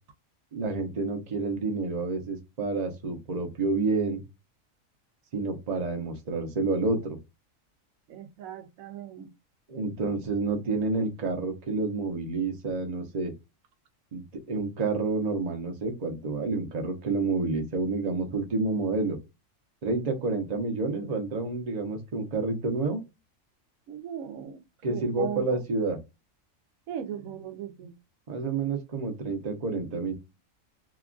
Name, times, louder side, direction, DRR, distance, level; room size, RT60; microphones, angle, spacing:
voice 1, 0.5-4.2 5.3-7.2 9.7-13.3 14.1-19.2 19.8-23.0 24.8-26.0 28.3-30.1, right 3 dB, 35° right, 0.7 m, -29 dB
voice 2, 8.1-9.3 23.9-24.6 24.9-25.6 26.9-27.9, right 9 dB, 90° right, 1.1 m, -37 dB
2.9 x 2.3 x 2.4 m
omnidirectional pair, 1.4 m